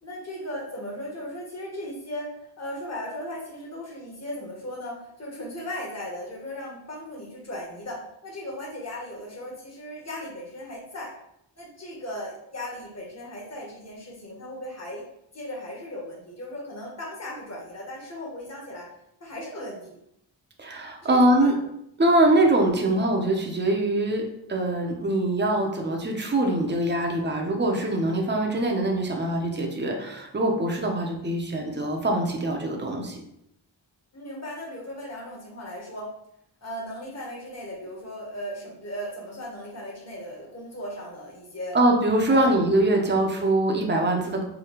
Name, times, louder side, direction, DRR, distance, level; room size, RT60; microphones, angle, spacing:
voice 1, 0.0-11.1 11.6-15.0 15.3-18.9 19.2-19.9 21.0-21.5 27.7-28.2 34.1-36.1 36.6-41.8 42.3-42.5 42.9-43.5, left 1 dB, 35° left, -3 dB, 1.1 m, -37 dB
voice 2, 20.6-21.5 22.0-33.2 41.7-44.4, right 1 dB, 25° right, 1 dB, 0.7 m, -23 dB
4.9 x 2.2 x 3.0 m, 0.78 s
wide cardioid pair, 75°, 46 cm